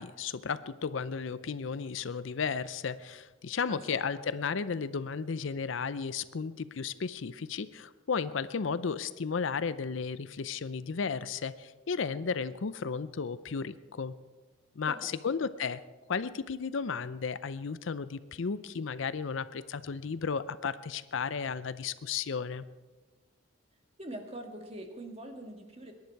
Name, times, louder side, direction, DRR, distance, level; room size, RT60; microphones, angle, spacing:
voice 1, 0.0-14.2 14.8-15.8 16.1-22.6, left 5 dB, 70° left, 15 dB, 0.5 m, -34 dB
voice 2, 3.7-4.1 14.9-15.4 24.0-25.9, right 1 dB, 30° right, 4 dB, 1.7 m, -44 dB
22.0 x 10.5 x 4.6 m, 1.3 s
head